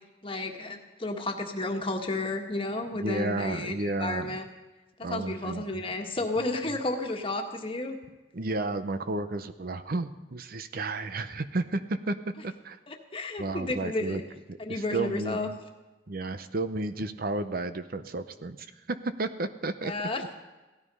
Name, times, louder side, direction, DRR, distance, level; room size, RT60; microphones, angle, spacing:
voice 1, 0.2-4.4 5.1-8.0 12.9-14.2 14.6-15.5 19.8-20.3, left 2 dB, 30° left, 3 dB, 1.6 m, -32 dB
voice 2, 3.0-4.4 5.0-5.8 8.3-12.8 13.4-14.2 14.5-15.5 16.1-19.9 20.2-20.3, right 2 dB, 55° right, 11 dB, 0.7 m, -32 dB
17.0 x 13.0 x 5.5 m, 1.2 s
head